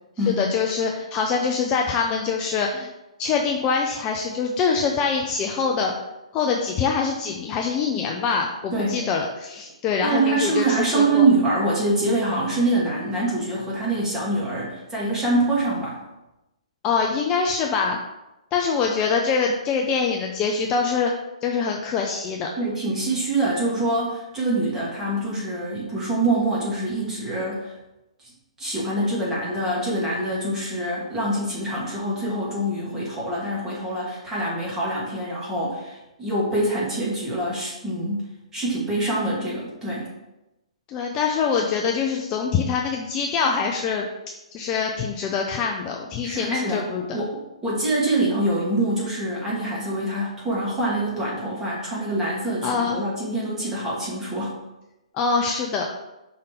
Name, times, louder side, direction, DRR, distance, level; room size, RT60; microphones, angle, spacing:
voice 1, 0.4-2.9 3.2-5.9 6.3-11.3 16.8-18.0 18.5-21.1 21.4-22.5 40.9-44.1 44.5-47.0 52.6-53.0 55.1-55.8, left 5 dB, 25° left, 1 dB, 0.6 m, -24 dB
voice 2, 8.7-9.0 10.0-16.0 22.6-27.7 28.2-28.3 28.6-38.3 38.5-40.1 46.2-46.9 47.1-54.6, right 2 dB, 10° right, -6 dB, 2.3 m, -25 dB
5.5 x 4.0 x 5.1 m, 0.96 s
figure-of-eight pair, 125°, 4 cm